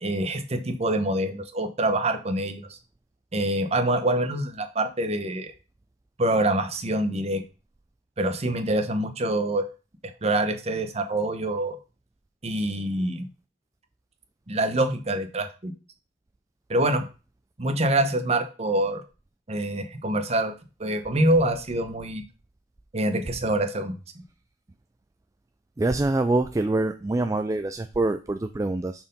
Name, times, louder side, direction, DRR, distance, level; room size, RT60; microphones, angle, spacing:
voice 1, 0.0-2.6 3.3-5.5 6.2-7.4 8.2-9.7 10.2-11.8 12.4-13.3 14.5-15.7 16.7-17.0 17.6-19.0 19.5-20.5 20.8-22.2 22.9-23.9, right 1 dB, 35° right, 7 dB, 1.0 m, -25 dB
voice 2, 25.8-28.9, right 2 dB, 20° right, 8 dB, 0.3 m, -25 dB
5.9 x 4.4 x 5.4 m, 0.32 s
head